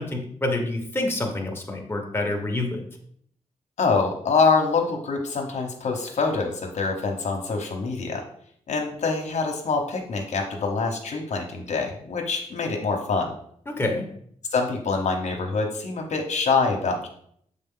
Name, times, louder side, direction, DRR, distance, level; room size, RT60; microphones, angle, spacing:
voice 1, 0.0-2.8 13.7-14.1, left 2 dB, 20° left, 1 dB, 1.2 m, -27 dB
voice 2, 3.8-8.2 8.7-13.3 14.5-17.1, left 4 dB, 70° left, 1 dB, 1.0 m, -25 dB
6.7 x 3.9 x 3.8 m, 0.64 s
wide cardioid pair, 110°, 13 cm